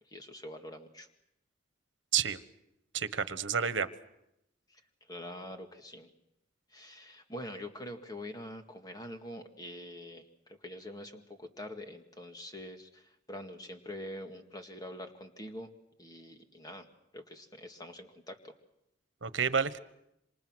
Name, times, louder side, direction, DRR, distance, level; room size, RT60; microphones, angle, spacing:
voice 1, 0.1-1.1 4.7-4.8 5.1-6.1 6.7-15.7 16.0-16.9 17.1-18.5, left 1 dB, 20° left, 5 dB, 1.9 m, -45 dB
voice 2, 2.9-3.9 19.2-19.8, right 7 dB, 90° right, 13 dB, 1.2 m, -30 dB
27.5 x 26.0 x 6.3 m, 0.82 s
head